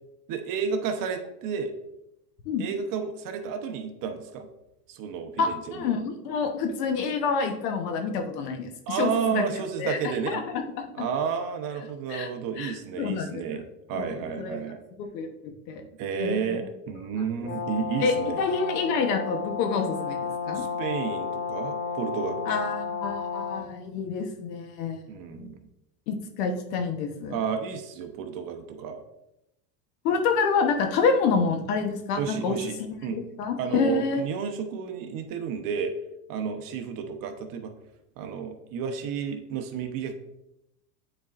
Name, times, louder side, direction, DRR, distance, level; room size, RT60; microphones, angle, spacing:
voice 1, 0.3-1.7 2.6-4.5 4.9-5.9 8.9-10.4 10.9-14.8 16.0-18.4 20.5-22.5 25.1-25.6 27.3-29.0 32.2-33.2 33.6-35.9 36.3-37.7 38.2-40.2, right 6 dB, 45° right, 6 dB, 0.8 m, -31 dB
voice 2, 5.4-8.7 8.9-9.4 9.8-10.4 11.0-11.1 12.1-12.3 12.6-13.6 13.9-14.6 15.0-15.8 16.2-16.6 17.4-17.5 18.0-20.2 20.5-20.7 22.5-25.0 25.3-25.5 26.1-27.3 30.0-34.2, left 5 dB, 75° left, 5 dB, 1.1 m, -28 dB
Brass instrument, 17.4-23.7, left 5 dB, 25° left, 0.7 m, -32 dB
9.0 x 4.2 x 2.5 m, 0.86 s
supercardioid pair, 125°, 48 cm